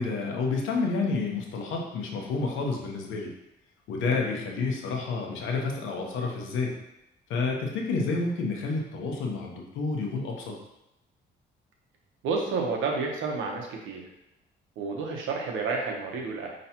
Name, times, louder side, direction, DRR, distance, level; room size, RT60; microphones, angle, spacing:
voice 1, 0.0-3.3 3.9-6.8 7.3-10.5, left 4 dB, 85° left, 0 dB, 0.9 m, -29 dB
voice 2, 12.2-14.0 14.8-16.5, right 4 dB, 85° right, 1 dB, 0.9 m, -30 dB
5.6 x 3.1 x 2.8 m, 0.89 s
cardioid pair, 90°, 20 cm